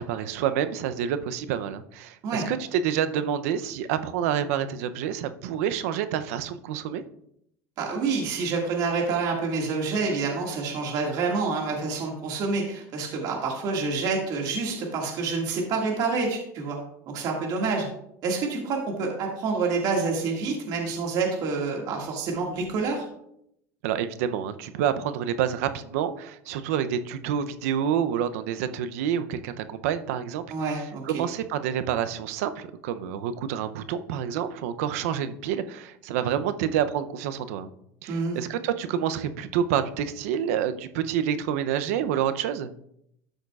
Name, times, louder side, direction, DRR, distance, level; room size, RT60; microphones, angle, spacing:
voice 1, 0.0-7.0 23.8-30.4 30.7-37.7 38.0-42.7, right 9 dB, 80° right, 11 dB, 0.6 m, -28 dB
voice 2, 7.8-16.8 17.1-17.9 18.2-23.1 30.5-31.2 38.1-38.4, right 4 dB, 55° right, 0 dB, 2.0 m, -27 dB
13.0 x 6.4 x 2.4 m, 0.75 s
supercardioid pair, 120°, 8 cm